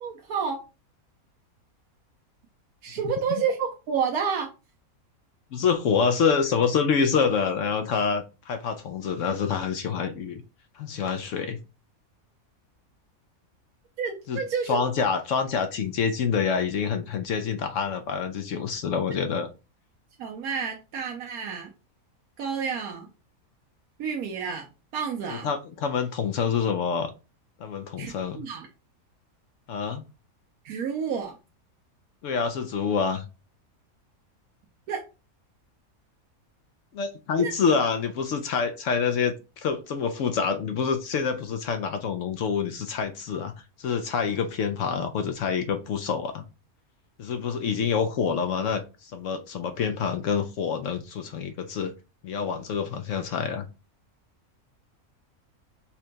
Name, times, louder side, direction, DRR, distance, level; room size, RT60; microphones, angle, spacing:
voice 1, 0.0-0.6 2.8-4.5 14.0-14.8 20.2-21.7 22.4-23.1 24.0-24.6 24.9-25.5 28.0-28.7 30.6-31.3 34.9-35.0 37.4-37.5, right 6 dB, 90° right, 1.2 m, -29 dB
voice 2, 5.5-10.4 10.8-11.6 14.3-19.5 25.3-27.1 27.6-28.4 29.7-30.0 32.2-33.2 36.9-43.5 43.8-46.4 47.2-51.9 52.2-53.7, left 6 dB, 70° left, 0.8 m, -27 dB
5.5 x 2.2 x 3.9 m
omnidirectional pair, 1.5 m